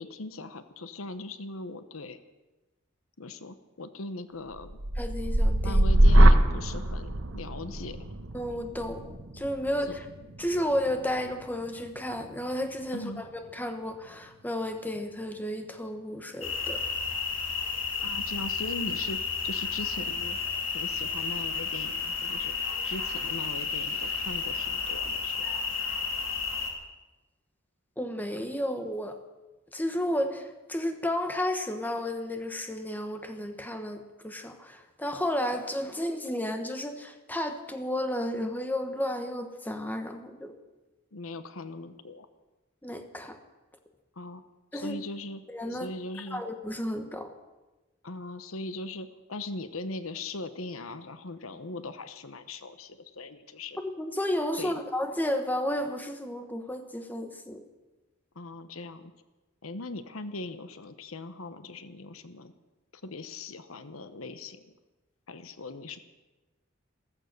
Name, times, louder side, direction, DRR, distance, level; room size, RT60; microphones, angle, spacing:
voice 1, 0.0-2.2 3.2-4.8 5.6-8.0 12.9-13.2 18.0-19.2 19.4-20.4 20.7-22.5 22.8-25.4 41.1-42.3 44.2-44.4 44.7-45.4 45.7-46.4 48.0-53.8 54.6-54.8 58.3-59.1 59.6-62.5 63.0-64.7 65.3-66.0, left 2 dB, 90° left, 11 dB, 1.1 m, -40 dB
sound 1, 4.5-12.6 13.0-13.5, right 1 dB, 70° right, 1.2 m, -24 dB
voice 2, 5.0-5.8 8.3-10.0 10.4-13.3 13.5-16.8 28.0-29.2 29.7-40.6 42.8-43.4 44.7-45.0 45.5-45.9 46.3-47.3 53.8-57.6, left 1 dB, 10° left, 6 dB, 1.2 m, -32 dB
sound 2, 16.4-26.7, left 5 dB, 75° left, 3.1 m, -32 dB
14.5 x 14.5 x 6.7 m, 1.1 s
head